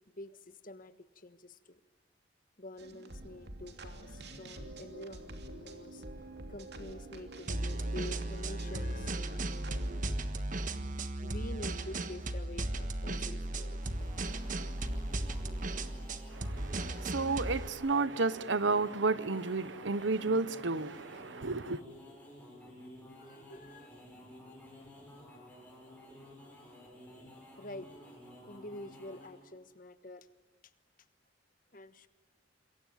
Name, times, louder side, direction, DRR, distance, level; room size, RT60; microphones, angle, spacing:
voice 1, 0.2-1.8 2.6-6.0 6.5-9.4 11.2-14.4 23.2-23.9 27.6-28.0 28.4-30.3 31.7-32.1, left 1 dB, 45° left, 1.3 m, -47 dB
sound 1, 2.8-10.1, right 1 dB, 60° right, 2.9 m, -47 dB
sound 2, 7.5-17.7, right 1 dB, 45° right, 1.4 m, -36 dB
sound 3, 13.6-29.5, left 1 dB, 10° left, 7.3 m, -53 dB
voice 2, 16.3-21.8, right 3 dB, 80° right, 1.0 m, -32 dB
27.0 x 23.0 x 9.1 m
head